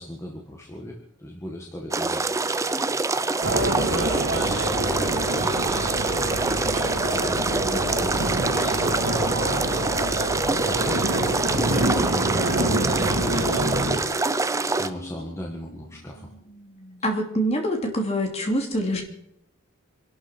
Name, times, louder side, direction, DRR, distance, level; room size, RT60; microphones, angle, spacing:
voice 1, 0.0-2.2 3.4-5.9 7.2-9.9 10.5-14.0 14.3-16.3, equal, 15° left, -1 dB, 1.8 m, -38 dB
sound 1, 1.9-14.9, right 3 dB, 15° right, 0.5 m, -25 dB
sound 2, 3.4-14.0, right 1 dB, 70° right, 3.0 m, -26 dB
sound 3, 5.8-17.4, left 2 dB, 90° left, 1.9 m, -39 dB
voice 2, 17.0-19.0, equal, 30° left, 2 dB, 2.7 m, -25 dB
26.0 x 12.0 x 4.5 m, 0.77 s
head